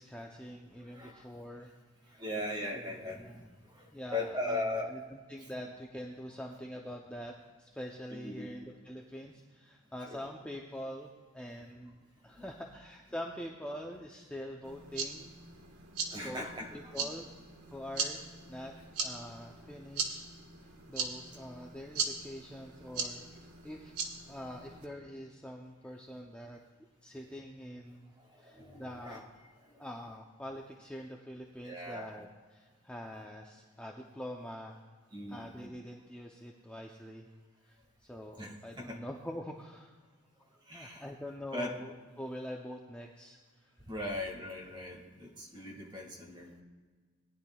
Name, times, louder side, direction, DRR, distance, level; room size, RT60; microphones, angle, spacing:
voice 1, 0.0-1.7 2.0-2.2 2.7-3.5 3.9-12.0 12.2-15.3 16.2-16.5 16.7-17.4 17.7-18.2 18.5-20.3 20.6-26.6 27.0-29.3 29.8-34.8 35.3-37.3 37.6-39.9 40.7-43.7, equal, 5° left, 0 dB, 0.5 m, -45 dB
voice 2, 0.8-1.2 2.1-3.4 3.7-4.9 5.4-5.5 8.1-8.5 10.0-10.2 12.3-12.5 16.1-17.1 28.3-29.2 29.6-29.8 31.6-32.1 35.1-35.5 38.4-39.0 40.7-41.0 41.5-41.8 43.9-46.6, left 2 dB, 20° right, -1 dB, 1.8 m, -39 dB
sound 1, 14.6-24.8, right 5 dB, 90° right, 1.4 m, -40 dB
19.0 x 10.0 x 2.3 m, 1.5 s
head